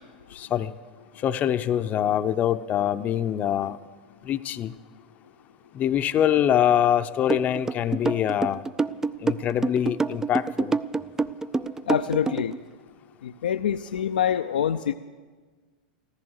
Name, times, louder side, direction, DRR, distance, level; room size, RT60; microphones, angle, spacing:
voice 1, 0.3-0.7 1.2-3.8 4.2-4.7 5.7-8.7 9.2-10.7, left 10 dB, 35° left, 10 dB, 0.6 m, -24 dB
sound 1, 7.3-12.6, right 4 dB, 10° right, 0.4 m, -26 dB
voice 2, 11.9-12.5 13.2-14.9, left 9 dB, 85° left, 8 dB, 0.5 m, -25 dB
14.5 x 14.5 x 6.4 m, 1.4 s
hypercardioid pair, 110°, 5 cm